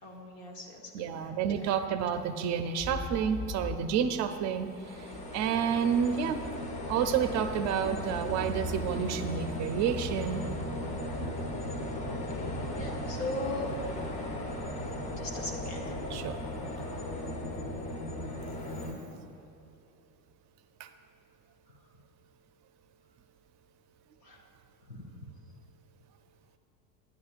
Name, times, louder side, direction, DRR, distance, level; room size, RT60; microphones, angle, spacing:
voice 1, 0.0-0.8 1.1-1.3 1.6-1.8 12.1-13.7 14.2-16.1 17.7-17.8 24.2-24.4 24.9-25.1, left 2 dB, 90° left, 0 dB, 1.3 m, -40 dB
voice 2, 0.9-5.0 5.3-6.4 6.9-10.4 12.8-13.0 16.1-16.4 20.8-20.9, right 7 dB, 35° right, 9 dB, 0.4 m, -30 dB
sound 1, 2.8-6.7 7.2-7.3, left 2 dB, 35° left, 1.3 m, -40 dB
sound 2, 4.5-18.9, left 1 dB, 50° left, 1.4 m, -36 dB
10.5 x 9.5 x 2.4 m, 2.7 s
hypercardioid pair, 85°, 48 cm